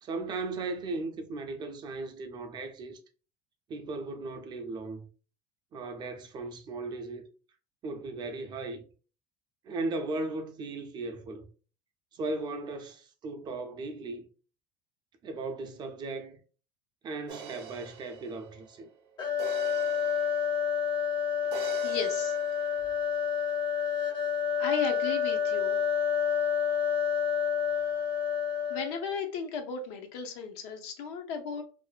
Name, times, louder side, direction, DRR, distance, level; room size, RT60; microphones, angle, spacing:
voice 1, 0.0-3.0 3.7-5.1 5.7-7.3 7.8-8.8 9.6-11.5 12.1-14.2 15.2-16.4 17.0-18.9, right 3 dB, 30° right, 0.4 m, -37 dB
sound 1, 17.3-20.8 21.5-22.8, right 5 dB, 90° right, 0.5 m, -45 dB
sound 2, 19.2-29.1, left 7 dB, 35° left, 0.5 m, -29 dB
voice 2, 21.8-22.3 24.6-25.8 28.7-31.6, left 6 dB, 80° left, 0.6 m, -35 dB
2.5 x 2.1 x 2.3 m
supercardioid pair, 120°, 14 cm